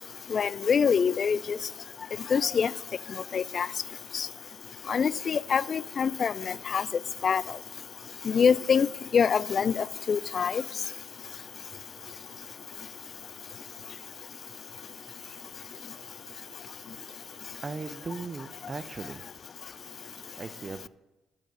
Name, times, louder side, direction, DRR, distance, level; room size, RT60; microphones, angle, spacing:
voice 1, 0.3-1.6 2.3-2.7 3.3-3.7 4.1-4.3 4.9-6.8 7.2-7.4 8.3-8.9 9.1-10.6, left 6 dB, 50° left, 0.4 m, -25 dB
voice 2, 17.6-19.2 20.4-20.9, right 4 dB, 35° right, 0.7 m, -38 dB
12.5 x 7.2 x 6.3 m
hypercardioid pair, 50°, 0 cm